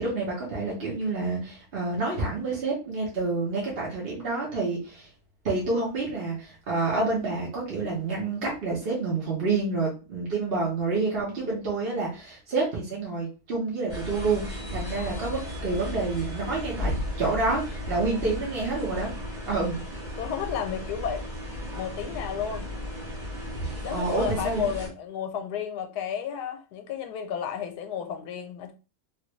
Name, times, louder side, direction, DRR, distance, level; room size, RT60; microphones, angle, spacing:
voice 1, 0.0-5.1 5.4-19.1 19.5-19.8 23.9-24.7, right 3 dB, 40° right, 1.0 m, -28 dB
sound 1, 13.9-24.9, left 1 dB, 25° right, 1.3 m, -35 dB
voice 2, 14.9-15.3 20.2-21.2 21.8-22.7 23.8-28.7, left 8 dB, 85° left, 1.1 m, -32 dB
3.1 x 2.5 x 3.0 m
omnidirectional pair, 1.7 m